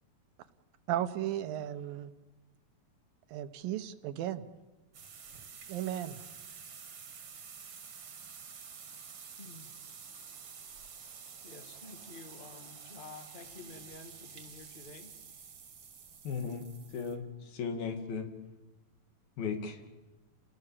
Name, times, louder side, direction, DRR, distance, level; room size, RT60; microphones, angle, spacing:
voice 1, 0.9-2.1 3.3-4.4 5.7-6.2, right 12 dB, 80° right, 12 dB, 2.6 m, -35 dB
sound 1, 4.9-17.1, right 6 dB, 45° right, 2.6 m, -49 dB
voice 2, 9.4-9.7 11.4-15.1, left 3 dB, 30° left, 7 dB, 1.0 m, -50 dB
voice 3, 16.2-16.7 16.9-18.3 19.4-19.8, left 5 dB, 80° left, 6 dB, 4.2 m, -36 dB
29.0 x 18.5 x 7.5 m, 1.1 s
omnidirectional pair, 4.2 m